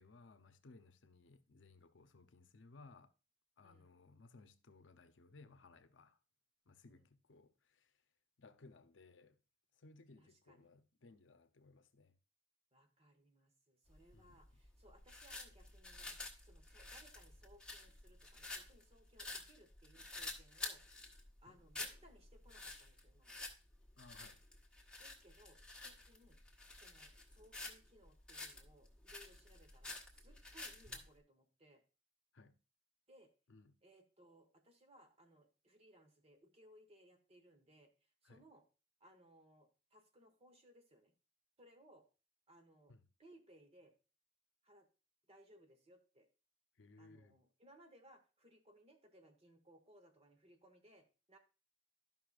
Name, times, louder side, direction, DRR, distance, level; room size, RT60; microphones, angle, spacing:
voice 1, 0.0-3.1 3.6-6.2 6.7-8.0 8.4-9.4 9.7-12.2 14.1-14.4 21.4-21.6 24.0-24.4 32.3-32.6 33.5-33.8 38.2-38.5 42.9-43.0 46.8-47.4, left 3 dB, 70° left, 0.7 m, -62 dB
voice 2, 3.6-4.0 6.8-7.1 10.2-10.7 12.7-20.8 21.4-23.5 25.0-26.4 26.7-31.8 33.1-33.3 33.8-38.6 39.0-41.1 41.6-42.0 42.5-42.9 43.2-43.9 44.6-44.9 45.3-46.3 47.0-51.4, right 1 dB, 30° right, 1.2 m, -65 dB
sound 1, 13.9-31.1, left 2 dB, 5° left, 1.3 m, -50 dB
13.5 x 5.5 x 2.4 m
head